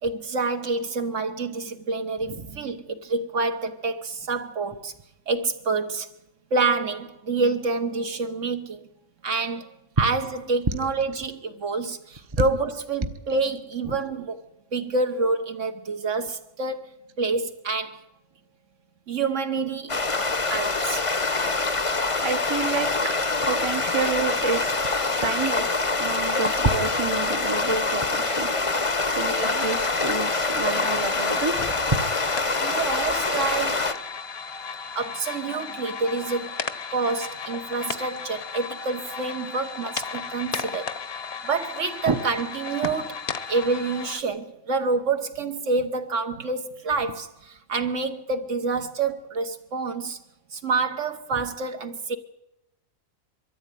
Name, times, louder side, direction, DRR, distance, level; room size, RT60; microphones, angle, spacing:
voice 1, 0.0-4.9 5.3-6.1 6.5-8.9 9.2-9.7 10.0-14.4 14.7-16.9 17.2-18.0 19.1-20.0 20.5-21.0 32.6-33.8 34.9-36.6 36.9-40.9 41.4-43.2 43.5-50.2 50.5-52.2, right 3 dB, 60° right, 1.5 m, -27 dB
sound 1, 19.9-33.9, left 3 dB, 25° left, 0.9 m, -25 dB
voice 2, 22.2-23.2 23.4-24.7 25.2-28.7 29.1-31.8 42.0-42.2 42.8-42.9, right 4 dB, 25° right, 0.9 m, -28 dB
sound 2, 29.4-44.2, left 5 dB, 50° left, 1.2 m, -35 dB
23.0 x 13.5 x 9.2 m
omnidirectional pair, 1.4 m